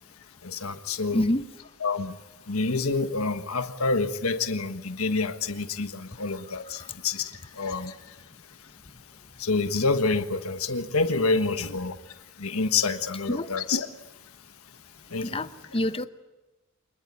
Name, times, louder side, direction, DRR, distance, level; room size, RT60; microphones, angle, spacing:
voice 1, 0.4-1.2 1.8-2.1 2.5-8.7 9.4-14.1 15.1-15.4, left 3 dB, 70° left, 9 dB, 1.5 m, -28 dB
voice 2, 1.1-1.4 6.7-6.9 13.3-13.5 15.2-16.1, left 1 dB, 25° left, 11 dB, 0.9 m, -27 dB
25.5 x 20.5 x 9.8 m, 1.1 s
head